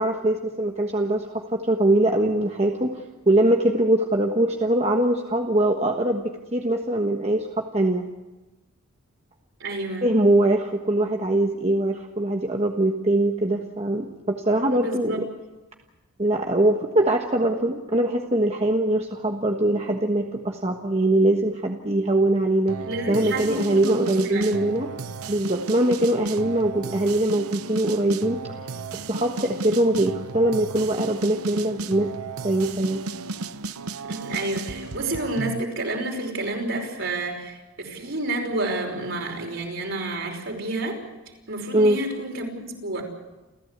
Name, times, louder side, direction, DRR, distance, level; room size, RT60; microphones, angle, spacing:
voice 1, 0.0-8.0 10.0-15.3 16.2-22.8 23.1-24.9 25.3-28.4 28.9-32.1 32.4-33.0 41.7-42.0, right 1 dB, 30° right, 2 dB, 1.3 m, -22 dB
voice 2, 9.6-10.1 14.7-15.2 22.8-24.6 34.0-41.0 41.5-43.0, right 2 dB, 55° right, 2 dB, 5.4 m, -30 dB
sound 1, 22.7-35.6, right 4 dB, 80° right, 0.9 m, -34 dB
29.0 x 15.5 x 8.2 m, 1.1 s
head